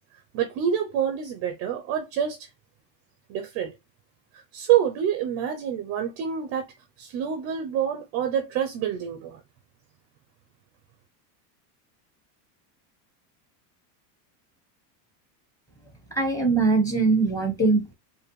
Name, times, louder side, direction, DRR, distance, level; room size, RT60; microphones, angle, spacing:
voice 1, 0.3-2.5 3.3-3.7 4.5-6.7 7.0-9.4, right 9 dB, 30° right, 0.4 m, -27 dB
voice 2, 16.1-17.9, right 3 dB, 5° left, 0.8 m, -22 dB
4.9 x 2.5 x 3.0 m
supercardioid pair, 150°, 49 cm